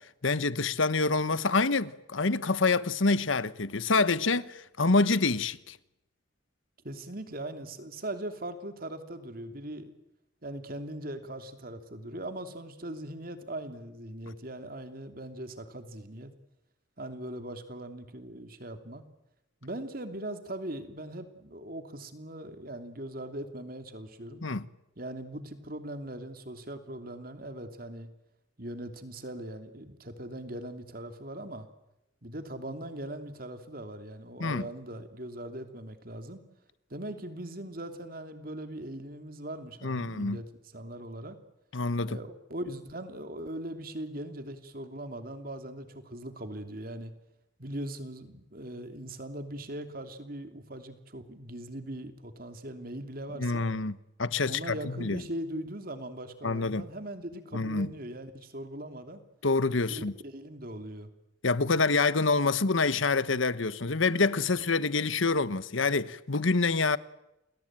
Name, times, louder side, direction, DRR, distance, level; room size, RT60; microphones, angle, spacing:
voice 1, 0.2-5.8 24.4-24.7 34.4-34.7 39.8-40.4 41.7-42.2 53.4-55.2 56.4-56.9 57.5-57.9 59.4-60.1 61.4-67.0, left 3 dB, 80° left, 1.2 m, -27 dB
voice 2, 6.8-9.9 10.4-16.3 17.0-19.0 19.6-24.4 25.0-28.1 28.6-31.7 32.2-36.4 36.9-40.4 40.7-41.4 42.0-47.1 47.6-53.7 54.5-59.2 59.9-61.1, right 1 dB, 45° right, 3.0 m, -40 dB
29.5 x 21.0 x 9.0 m
head